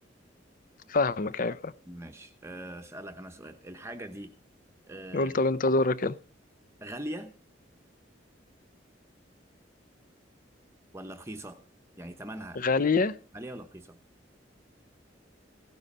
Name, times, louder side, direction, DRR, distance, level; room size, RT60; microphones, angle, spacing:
voice 1, 0.9-1.7 5.1-6.2 12.6-13.2, left 3 dB, 45° left, 0.6 m, -25 dB
voice 2, 1.9-4.3 4.9-5.4 6.8-7.3 10.9-11.6 12.0-12.6 13.3-14.0, right 1 dB, 15° right, 0.9 m, -41 dB
16.5 x 9.6 x 5.4 m
head